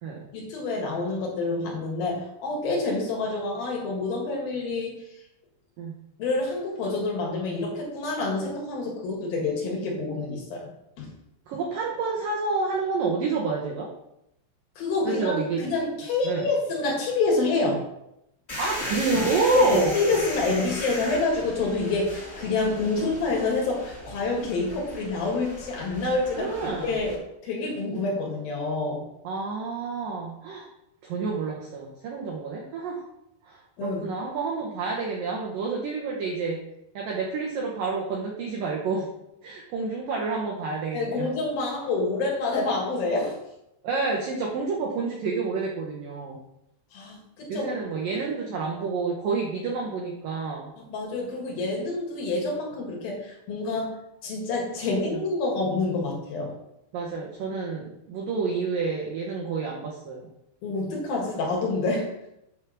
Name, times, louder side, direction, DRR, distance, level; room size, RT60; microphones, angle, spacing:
voice 1, 0.3-5.0 6.2-10.7 11.0-11.1 14.8-15.4 15.6-17.8 18.5-18.6 19.5-27.2 27.4-29.0 33.8-34.1 40.9-43.4 46.9-47.7 50.8-56.5 60.6-62.1, left 3 dB, 60° left, -1 dB, 3.1 m, -27 dB
voice 2, 11.5-13.9 15.0-15.7 16.2-16.5 18.6-20.0 26.3-27.0 29.2-30.7 31.0-33.0 33.4-36.6 37.0-39.1 39.4-41.3 43.8-46.4 47.5-50.7 55.1-55.2 56.9-60.3, right 4 dB, 85° right, -2 dB, 2.0 m, -29 dB
sound 1, 18.5-27.2, left 1 dB, 85° left, 0.6 m, -37 dB
8.9 x 3.5 x 6.3 m, 0.83 s
omnidirectional pair, 5.4 m